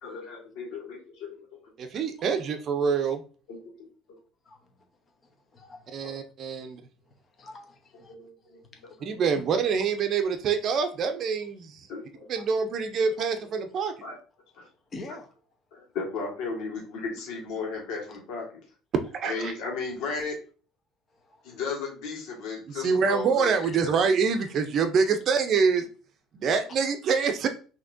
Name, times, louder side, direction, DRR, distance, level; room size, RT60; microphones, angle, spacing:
voice 1, 0.0-1.7 3.5-3.7 4.1-4.2 6.0-6.1 7.9-8.9 11.9-12.3 14.0-14.2 14.5-14.7 15.7-18.6 19.2-20.4 21.4-24.1, left 4 dB, 70° left, -1 dB, 1.7 m, -35 dB
voice 2, 1.8-3.2 5.9-6.8 9.0-11.9 12.3-13.9 19.1-19.5 22.8-25.9 26.3-27.5, right 5 dB, 45° right, 7 dB, 0.7 m, -25 dB
voice 3, 5.2-6.1 7.1-8.1 8.7-9.0 12.3-12.5 14.9-15.3 21.1-21.6, left 2 dB, 30° left, 4 dB, 1.0 m, -46 dB
5.9 x 2.9 x 2.7 m, 0.38 s
cardioid pair, 130°, 0 cm